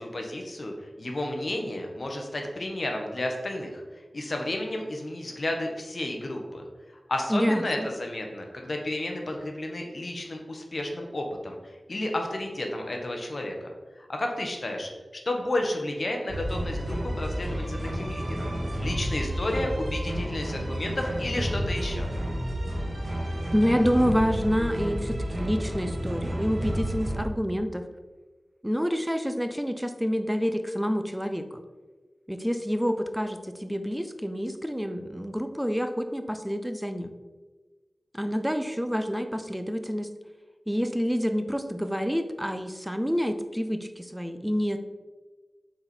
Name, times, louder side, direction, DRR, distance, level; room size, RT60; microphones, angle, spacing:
voice 1, 0.0-3.8 4.1-6.6 7.1-13.7 14.0-14.9 15.2-18.5 18.8-22.1, left 1 dB, 55° left, 2 dB, 1.2 m, -32 dB
voice 2, 7.3-7.9 23.5-27.9 28.6-31.6 32.3-37.1 38.1-40.1 40.7-44.8, equal, 5° right, 8 dB, 0.6 m, -28 dB
sound 1, 16.3-27.2, equal, 55° right, 1.8 m, -31 dB
7.6 x 4.3 x 4.4 m, 1.3 s
wide cardioid pair, 70°, 0 cm